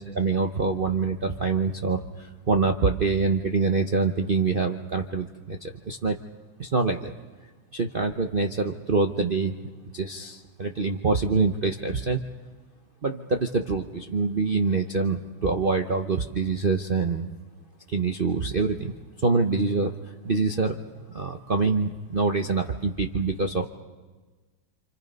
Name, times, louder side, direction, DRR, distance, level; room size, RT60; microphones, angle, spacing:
voice 1, 0.0-6.2 6.6-7.1 7.7-9.5 9.9-12.2 13.0-17.3 17.9-18.9 19.2-19.9 20.2-20.8 21.1-23.7, right 4 dB, 75° right, 4 dB, 0.4 m, -25 dB
28.5 x 26.5 x 5.4 m, 1.3 s
omnidirectional pair, 2.4 m